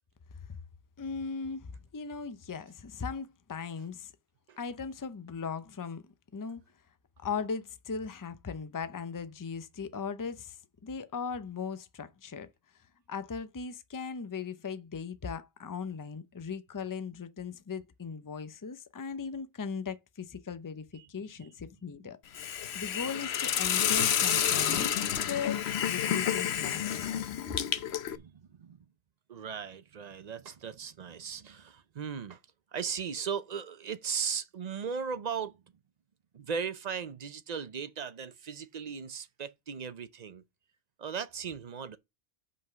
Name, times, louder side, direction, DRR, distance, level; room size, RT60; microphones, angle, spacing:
voice 1, 1.0-4.1 4.6-6.6 7.2-12.5 12.7-27.1 27.5-27.6, left 5 dB, 25° left, 0.5 m, -38 dB
Hiss, 22.3-28.2, left 9 dB, 80° left, 1.0 m, -29 dB
voice 2, 27.7-28.8 29.3-32.4 32.7-35.6 36.3-40.4 41.0-42.0, right 6 dB, 45° right, 0.7 m, -37 dB
5.6 x 5.5 x 6.6 m
omnidirectional pair, 1.1 m